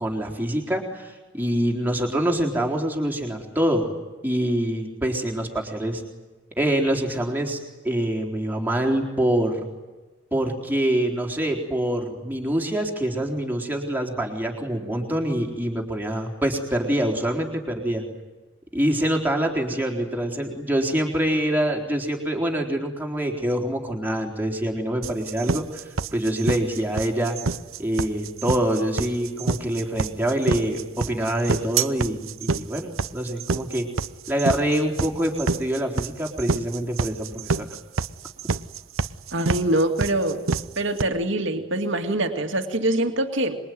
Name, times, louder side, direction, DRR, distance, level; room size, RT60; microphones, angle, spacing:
voice 1, 0.0-3.9 4.2-6.0 6.6-7.6 7.8-9.6 10.3-18.0 18.7-25.8 26.1-27.4 27.8-33.9 34.3-37.7, right 1 dB, 10° right, 1 dB, 4.0 m, -25 dB
sound 1, 25.0-41.0, right 4 dB, 75° right, 0.8 m, -27 dB
voice 2, 39.3-40.4 40.8-43.6, right 1 dB, 60° right, 4 dB, 2.4 m, -24 dB
26.0 x 22.5 x 9.5 m, 1.2 s
head